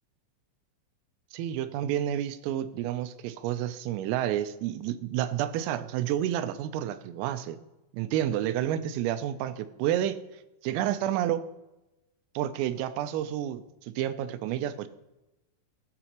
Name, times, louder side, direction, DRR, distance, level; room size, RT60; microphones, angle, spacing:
voice 1, 1.3-7.6 7.9-10.2 10.6-11.4 12.4-14.9, right 11 dB, 85° right, 11 dB, 3.3 m, -30 dB
15.5 x 6.9 x 2.9 m, 0.97 s
omnidirectional pair, 5.9 m